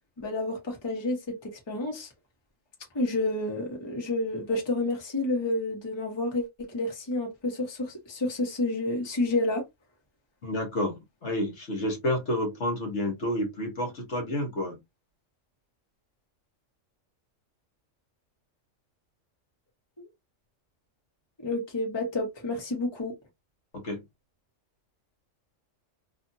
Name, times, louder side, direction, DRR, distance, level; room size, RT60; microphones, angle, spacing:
voice 1, 0.2-2.1 2.9-9.7 20.0-20.1 21.4-23.1, left 2 dB, 20° left, 1.0 m, -30 dB
voice 2, 10.4-14.8 23.7-24.0, left 1 dB, 60° left, 1.3 m, -30 dB
2.8 x 2.5 x 2.6 m
omnidirectional pair, 1.3 m